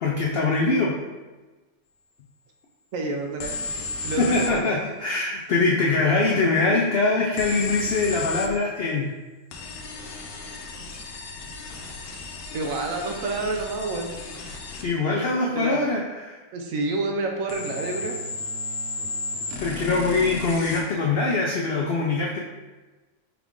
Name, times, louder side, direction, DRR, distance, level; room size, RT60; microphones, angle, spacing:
voice 1, 0.0-0.9 4.2-9.1 14.8-16.4 19.6-22.4, left 3 dB, 75° left, -2 dB, 0.5 m, -23 dB
voice 2, 2.9-3.6 4.0-4.7 12.5-14.1 15.5-15.8 16.5-18.2, right 2 dB, 70° right, 2 dB, 0.9 m, -28 dB
sound 1, 3.4-4.6 7.4-8.5 9.5-14.9 17.5-20.8, left 3 dB, 90° left, 1.1 m, -34 dB
4.7 x 2.4 x 3.5 m, 1.2 s
omnidirectional pair, 1.6 m